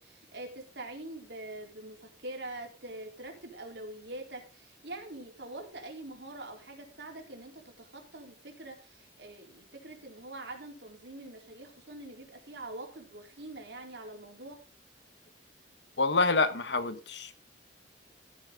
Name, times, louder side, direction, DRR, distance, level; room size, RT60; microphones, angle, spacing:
voice 1, 0.0-14.6, right 2 dB, 70° right, 2 dB, 4.1 m, -44 dB
voice 2, 16.0-17.3, left 3 dB, 75° left, 11 dB, 1.5 m, -27 dB
14.0 x 9.1 x 3.9 m, 0.33 s
head